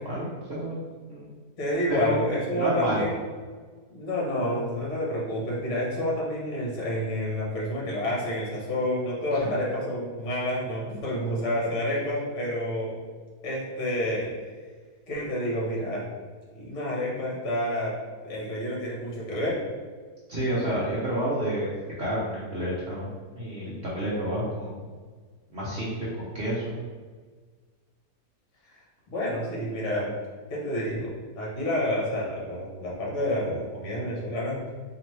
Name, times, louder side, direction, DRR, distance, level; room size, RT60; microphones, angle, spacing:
voice 1, 0.1-0.8 1.1-1.3 1.9-2.2 2.5-3.1 9.4-9.6 20.3-21.7 22.0-24.8 25.5-26.8, right 1 dB, 50° right, -7 dB, 0.8 m, -30 dB
voice 2, 1.6-3.1 3.9-12.9 13.4-14.3 15.1-16.0 16.5-17.9 18.2-19.6 28.7-28.8 29.1-30.1 30.5-31.1 31.4-34.6, left 1 dB, 50° left, -5 dB, 1.3 m, -29 dB
4.2 x 2.9 x 3.1 m, 1.5 s
omnidirectional pair, 1.7 m